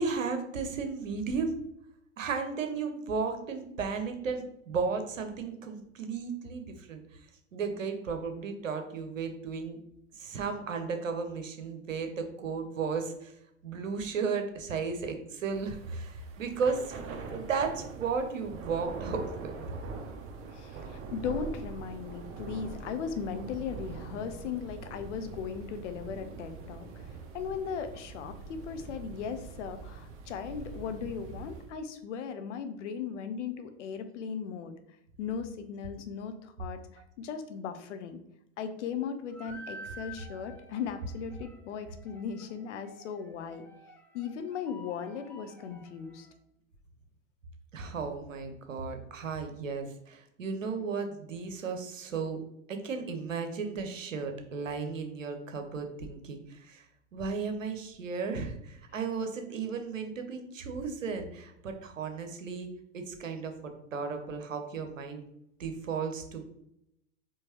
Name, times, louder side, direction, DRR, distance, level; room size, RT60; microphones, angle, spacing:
voice 1, 0.0-1.5 2.2-7.0 7.5-9.8 10.1-13.3 13.6-16.9 17.3-19.5 47.7-52.4 52.7-56.8 57.1-62.7 62.9-65.2 65.6-66.5, right 5 dB, 85° right, 6 dB, 0.8 m, -34 dB
Thunder / Rain, 15.4-31.8, right 5 dB, 35° right, 0.8 m, -43 dB
voice 2, 20.5-27.1 27.3-34.7 35.2-36.8 37.2-38.2 38.6-43.7 44.1-46.3, left 6 dB, 70° left, 9 dB, 0.7 m, -37 dB
sound 1, 39.3-46.3, equal, 5° left, 0.6 m, -50 dB
4.5 x 3.0 x 3.0 m, 0.77 s
hypercardioid pair, 95°, 38 cm